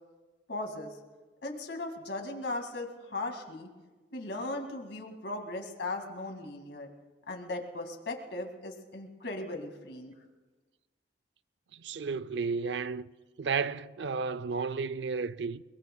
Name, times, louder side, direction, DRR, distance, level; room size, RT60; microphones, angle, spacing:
voice 1, 0.5-0.9 1.4-3.7 4.1-6.9 7.3-10.1, left 2 dB, 75° left, 2.2 m, -38 dB
voice 2, 11.7-13.1 13.4-15.6, right 5 dB, 80° right, 0.5 m, -33 dB
29.5 x 20.5 x 2.3 m
head